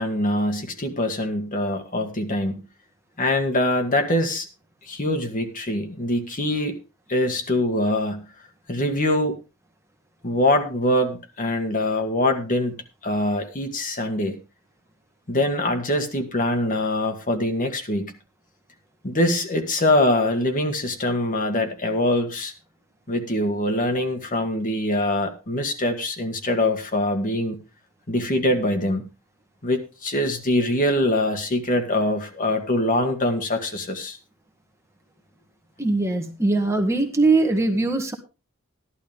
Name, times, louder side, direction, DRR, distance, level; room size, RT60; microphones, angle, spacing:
voice 1, 0.0-2.6 3.2-4.5 4.9-6.7 7.1-8.2 8.7-9.4 10.2-12.7 13.0-14.4 15.3-18.1 19.0-22.5 23.1-27.6 28.1-29.0 29.6-34.2, left 1 dB, 40° left, 5 dB, 1.7 m, -23 dB
voice 2, 35.8-38.1, right 3 dB, 15° right, 4 dB, 1.5 m, -21 dB
14.0 x 11.5 x 3.5 m, 0.30 s
head